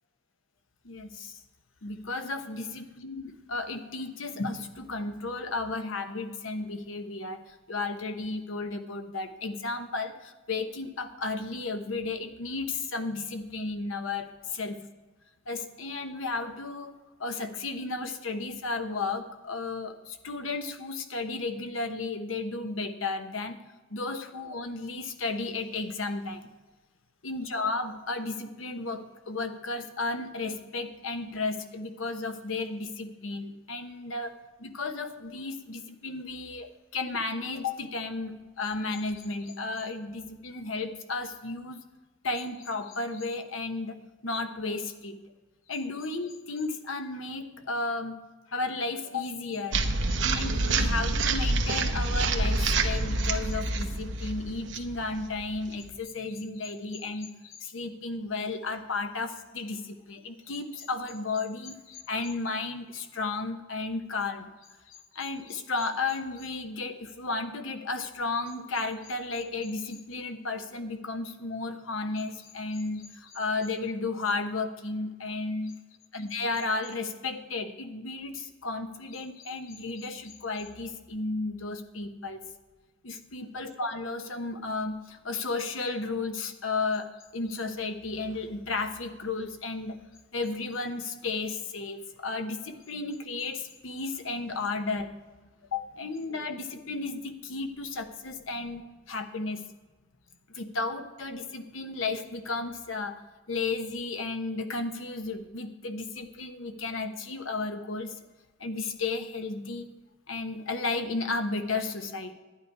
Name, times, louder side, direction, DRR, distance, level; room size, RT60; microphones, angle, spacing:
voice 1, 0.8-1.3 1.8-14.8 15.5-16.9 17.2-23.6 23.9-26.5 27.2-41.8 42.2-44.0 44.2-45.2 45.7-48.2 48.5-64.5 64.9-75.7 76.1-82.4 83.0-90.0 90.3-95.1 95.7-99.6 100.5-103.2 103.5-108.2 108.6-109.9 110.3-112.3, left 3 dB, 85° left, 7 dB, 1.1 m, -33 dB
sound 1, 49.7-55.9, right 3 dB, 65° right, 0.9 m, -27 dB
12.0 x 9.8 x 4.7 m, 1.2 s
head